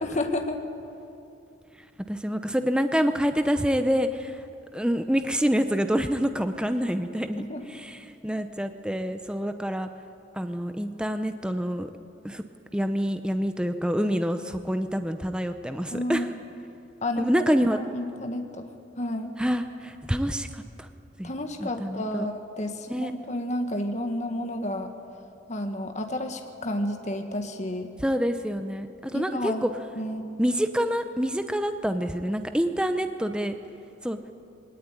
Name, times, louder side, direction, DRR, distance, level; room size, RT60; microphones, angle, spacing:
voice 1, 0.0-0.6 7.4-7.6 15.9-16.4 17.0-18.6 19.0-19.3 21.2-24.9 25.5-27.9 29.1-29.7 30.0-30.2, left 1 dB, 40° left, 5 dB, 1.5 m, -31 dB
voice 2, 2.1-4.4 4.7-7.4 7.7-9.9 10.3-11.9 12.2-12.4 12.7-16.3 17.2-17.8 19.4-20.9 21.2-21.3 21.6-22.3 22.9-23.1 28.0-29.7 30.4-33.5 34.0-34.2, equal, 5° right, 8 dB, 0.7 m, -27 dB
22.0 x 18.0 x 9.9 m, 2.7 s
head